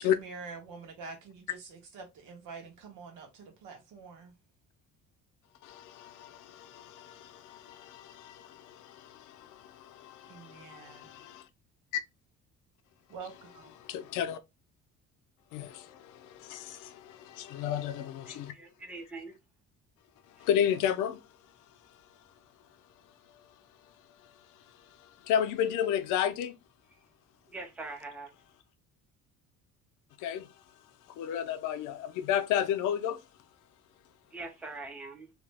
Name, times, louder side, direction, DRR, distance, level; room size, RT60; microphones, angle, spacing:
voice 1, 0.0-4.3 10.3-11.2 13.1-13.7, right 4 dB, 85° right, 1.2 m, -46 dB
voice 2, 5.6-11.4 11.9-12.0 13.8-14.4 15.5-18.5 20.4-21.2 25.0-26.6 30.2-30.5 31.2-33.2, left 9 dB, 85° left, 0.5 m, -32 dB
voice 3, 18.3-19.3 27.5-28.3 34.3-35.3, right 3 dB, 5° right, 0.3 m, -43 dB
2.8 x 2.0 x 3.3 m
cardioid pair, 180°, 30 cm